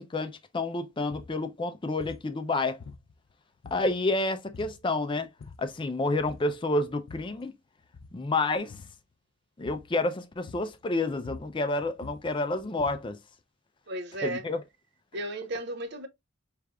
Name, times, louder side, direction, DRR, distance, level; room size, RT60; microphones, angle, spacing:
voice 1, 0.0-2.8 3.7-5.3 5.6-7.5 8.1-8.8 9.6-13.2 14.2-14.6, left 2 dB, 25° left, 0.4 m, -29 dB
sound 1, 1.1-1.4 2.0-2.3 2.8-3.3 3.6-4.1 4.5-4.8 5.2-5.8 6.2-6.6 6.9-7.4 7.8-8.2 8.7-9.0 9.7-10.0 10.5-10.8 11.1-13.2, left 3 dB, 75° left, 0.5 m, -47 dB
voice 2, 13.9-14.5 15.1-16.1, right 1 dB, 55° right, 0.8 m, -34 dB
5.0 x 3.3 x 2.3 m
head